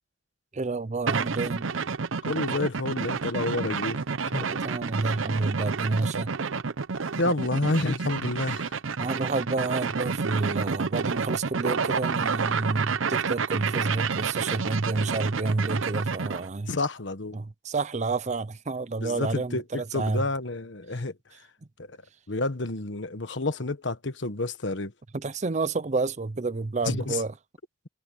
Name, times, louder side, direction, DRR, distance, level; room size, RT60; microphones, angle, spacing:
voice 1, 0.5-1.7 4.4-6.3 9.0-16.7 17.3-20.2 25.1-27.3, right 3 dB, 35° right, 0.6 m, -29 dB
sound 1, 1.1-16.5, right 5 dB, 90° right, 0.7 m, -29 dB
voice 2, 2.2-4.0 4.3-4.5 7.2-8.7 16.7-17.4 19.0-21.2 21.8-22.0 22.3-24.9 26.8-27.2, left 2 dB, 65° left, 1.4 m, -29 dB
head